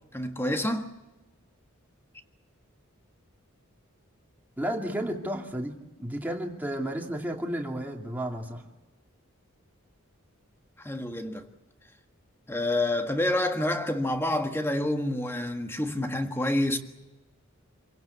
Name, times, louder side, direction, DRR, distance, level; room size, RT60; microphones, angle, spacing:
voice 1, 0.1-0.9 10.8-11.5 12.5-16.8, left 1 dB, 10° left, 1.6 m, -28 dB
voice 2, 4.6-8.6, right 1 dB, 10° right, 2.6 m, -32 dB
27.5 x 17.0 x 8.2 m
head